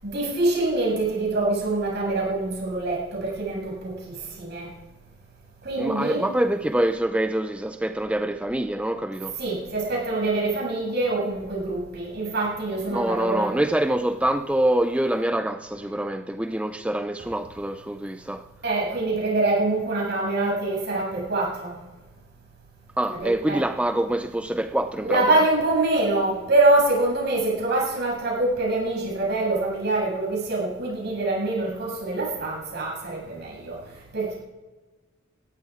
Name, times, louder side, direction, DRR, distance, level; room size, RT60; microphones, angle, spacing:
voice 1, 0.0-4.7 5.6-6.2 9.4-13.5 18.6-21.7 23.1-23.6 25.0-33.8 34.1-34.3, right 2 dB, 60° right, 7.6 m, -25 dB
voice 2, 5.8-9.4 12.9-18.5 23.0-25.4, right 1 dB, 5° right, 0.5 m, -25 dB
20.0 x 14.0 x 4.9 m
head